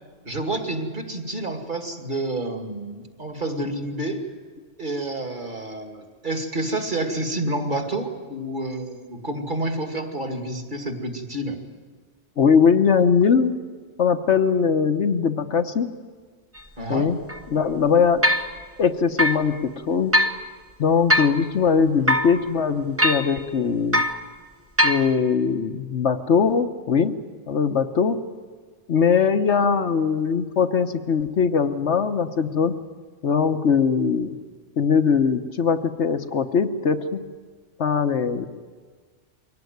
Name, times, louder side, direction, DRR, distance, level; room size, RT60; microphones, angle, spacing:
voice 1, 0.2-4.2 4.8-11.6 16.8-17.1, right 1 dB, 40° right, 4 dB, 2.5 m, -29 dB
voice 2, 12.4-13.5 14.0-15.9 16.9-17.2 17.5-18.2 18.8-20.1 20.8-24.0 24.8-27.1 27.5-28.2 28.9-32.7 33.2-34.3 34.8-37.2 37.8-38.5, left 6 dB, 65° left, 7 dB, 1.3 m, -21 dB
sound 1, 16.6-16.7 17.3-17.4 18.2-18.5 19.2-19.4 20.1-20.4 21.1-21.4 22.1-22.3 23.0-23.3 23.9-24.2 24.8-25.1, equal, 10° right, 1.0 m, -20 dB
23.5 x 18.0 x 9.4 m, 1.5 s
omnidirectional pair, 1.3 m